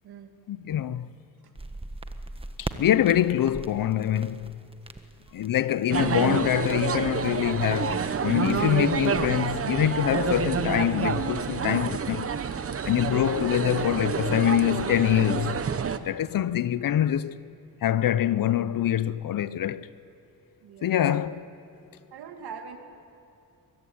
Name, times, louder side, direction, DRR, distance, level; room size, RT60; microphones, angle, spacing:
voice 1, 0.5-1.1 2.6-4.6 5.3-12.3 12.9-15.6 16.0-17.4 17.8-19.9 20.8-21.4, left 11 dB, 60° left, 0.8 m, -25 dB
sound 1, 1.6-9.6, right 2 dB, 15° right, 1.4 m, -42 dB
sound 2, 5.9-16.0, right 6 dB, 35° right, 1.0 m, -28 dB
voice 2, 20.6-21.1 22.1-22.8, right 6 dB, 80° right, 2.5 m, -42 dB
23.5 x 21.0 x 9.5 m
cardioid pair, 95°, 38 cm